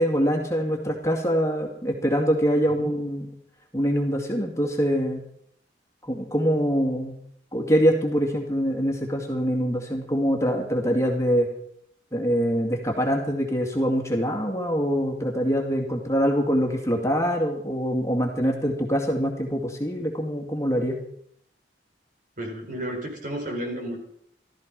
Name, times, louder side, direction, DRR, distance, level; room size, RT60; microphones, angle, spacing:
voice 1, 0.0-3.3 3.7-5.2 6.1-7.2 7.5-11.5 12.1-21.0, equal, 15° left, 1 dB, 2.3 m, -24 dB
voice 2, 22.4-24.0, right 1 dB, 50° right, 2 dB, 4.4 m, -32 dB
15.0 x 13.5 x 5.3 m, 0.68 s
head